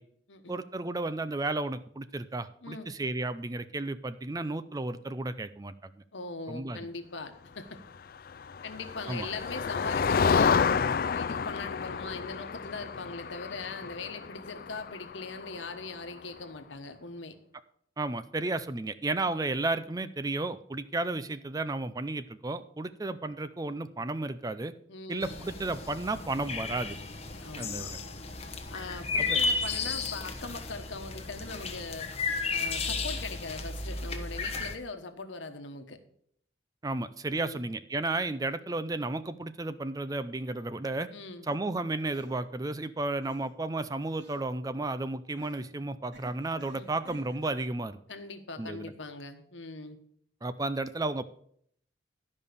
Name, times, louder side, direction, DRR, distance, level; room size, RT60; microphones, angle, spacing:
voice 1, 0.5-5.7 6.5-6.8 9.1-9.3 18.0-24.7 25.1-27.0 27.6-28.0 29.3-29.4 36.8-41.1 41.5-48.0 48.6-48.9 50.4-51.2, right 2 dB, 20° right, 13 dB, 0.4 m, -33 dB
voice 2, 2.6-2.9 6.1-7.8 8.6-10.7 11.1-17.4 24.9-25.3 27.4-27.9 28.7-32.1 32.5-36.0 37.3-37.7 41.1-41.5 46.7-46.9 48.1-50.0, left 3 dB, 75° left, 7 dB, 1.2 m, -41 dB
Motor vehicle (road), 8.3-16.0, left 6 dB, 50° left, 0.4 m, -30 dB
sound 1, 25.2-34.7, left 4 dB, 30° left, 1.1 m, -33 dB
sound 2, 41.5-41.6 42.1-42.4 43.2-43.5 44.2-44.5 45.3-45.7 46.1-47.6, left 1 dB, 65° right, 3.0 m, -51 dB
12.5 x 5.4 x 6.8 m, 0.66 s
head